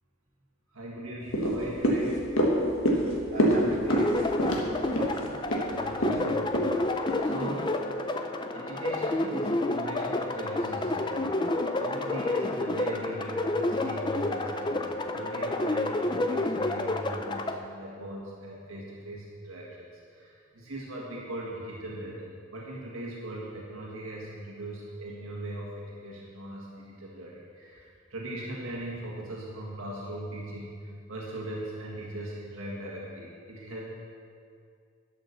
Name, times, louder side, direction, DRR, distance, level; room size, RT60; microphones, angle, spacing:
voice 1, 0.7-2.2 5.7-6.6 7.2-7.8 8.5-11.4 11.8-30.8 31.1-33.9, right 1 dB, 80° right, -4 dB, 1.7 m, -39 dB
sound 1, 1.3-7.8 8.2-8.3, equal, 75° left, 1.5 m, -27 dB
voice 2, 3.3-5.3, equal, 35° right, -6 dB, 2.4 m, -39 dB
Biomechanic emotion, 3.9-17.6, left 2 dB, 20° left, 0.4 m, -29 dB
11.5 x 5.9 x 6.9 m, 2.3 s
head